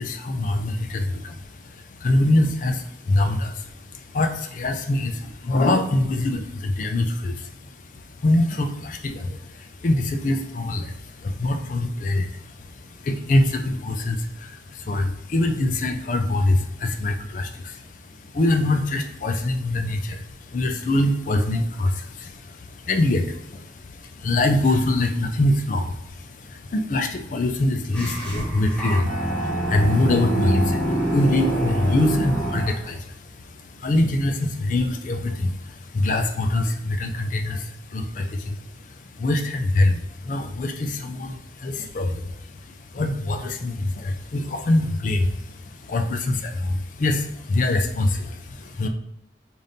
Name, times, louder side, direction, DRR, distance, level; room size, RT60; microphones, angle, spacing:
voice 1, 0.0-48.9, left 2 dB, 45° left, 5 dB, 0.4 m, -24 dB
sound 1, 27.9-32.9, right 1 dB, 5° left, 0.8 m, -25 dB
5.1 x 2.5 x 2.7 m, 0.80 s
head